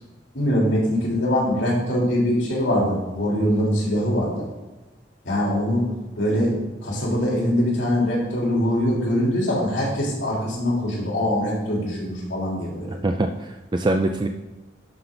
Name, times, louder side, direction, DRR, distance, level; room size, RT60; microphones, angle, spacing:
voice 1, 0.3-4.5 5.2-5.9 6.2-12.9, equal, 85° left, -4 dB, 3.3 m, -23 dB
voice 2, 12.9-14.3, right 2 dB, 25° right, 6 dB, 0.4 m, -24 dB
11.5 x 5.9 x 3.9 m, 1.1 s
head